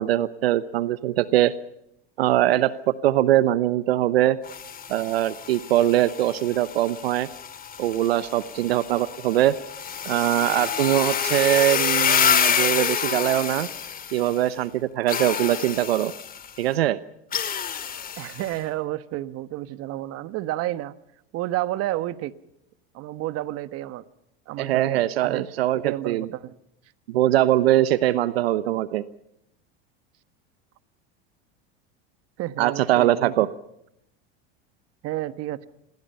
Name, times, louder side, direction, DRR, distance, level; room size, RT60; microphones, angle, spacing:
voice 1, 0.0-1.5 2.2-4.4 4.9-7.3 7.8-9.5 10.1-13.7 14.1-16.1 16.6-17.0 24.6-26.3 27.1-29.0 32.6-33.5, right 13 dB, 90° right, 15 dB, 1.0 m, -22 dB
sound 1, 4.4-14.5 15.1-16.5 17.3-18.5, left 7 dB, 30° left, 2.3 m, -28 dB
voice 2, 18.2-21.0 21.3-22.3 22.9-24.0 24.5-25.4 25.8-26.5 32.4-33.3 35.0-35.7, right 15 dB, 50° right, 13 dB, 1.4 m, -30 dB
27.0 x 22.0 x 5.6 m, 0.80 s
supercardioid pair, 105°, 30 cm